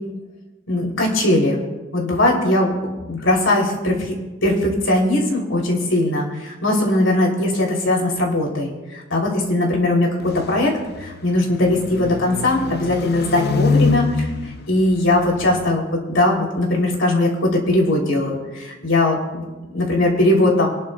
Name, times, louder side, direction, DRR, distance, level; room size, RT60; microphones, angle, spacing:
voice 1, 0.7-1.6 1.9-4.1 4.4-19.4 19.7-20.7, left 1 dB, 70° left, -1 dB, 3.2 m, -20 dB
sound 1, 10.2-15.7, left 4 dB, 55° left, 0.6 m, -25 dB
27.0 x 11.0 x 2.4 m, 1.2 s
head